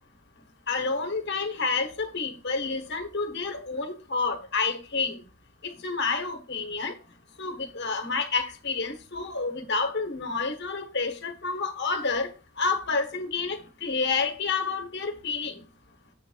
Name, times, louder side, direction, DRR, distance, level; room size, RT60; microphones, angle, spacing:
voice 1, 0.7-5.2 5.6-6.9 7.4-15.6, left 4 dB, 60° left, 1.4 m, -29 dB
8.3 x 3.3 x 6.3 m
head